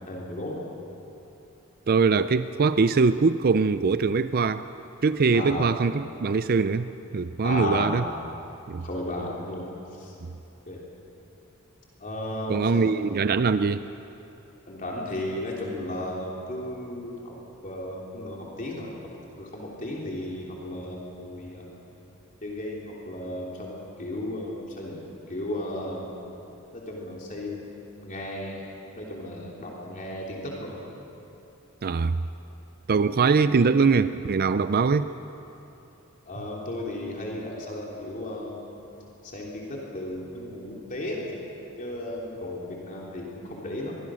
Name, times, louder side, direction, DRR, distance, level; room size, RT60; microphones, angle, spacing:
voice 1, 0.1-0.6 5.3-5.6 7.4-8.0 8.8-9.7 9.9-10.1 10.7-10.8 12.0-12.8 14.7-17.3 17.6-18.9 19.4-21.7 22.4-25.0 25.3-26.1 26.7-27.7 28.0-28.6 29.0-30.8 36.3-38.7 39.2-41.4 41.8-44.0, left 1 dB, 40° left, -3 dB, 3.3 m, -34 dB
voice 2, 1.9-4.6 5.0-8.0 8.7-8.8 12.5-13.8 31.8-32.2 32.9-35.1, right 4 dB, 45° right, 12 dB, 0.5 m, -22 dB
24.5 x 22.0 x 6.3 m, 3.0 s
head